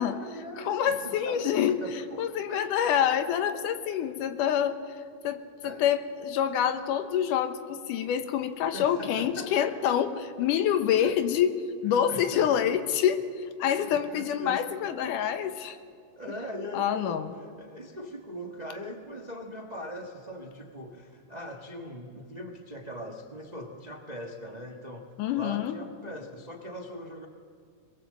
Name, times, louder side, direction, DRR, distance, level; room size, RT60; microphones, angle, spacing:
voice 1, 0.0-2.7 5.6-5.9 8.7-10.5 11.0-11.2 11.9-12.8 13.8-14.6 16.1-27.3, equal, 55° right, 3 dB, 0.4 m, -41 dB
voice 2, 0.6-1.8 2.2-4.8 5.2-10.1 10.4-11.5 11.8-15.8 16.7-17.3 25.2-25.8, left 9 dB, 90° left, 10 dB, 2.6 m, -26 dB
22.0 x 21.5 x 7.7 m, 2.2 s
omnidirectional pair, 3.6 m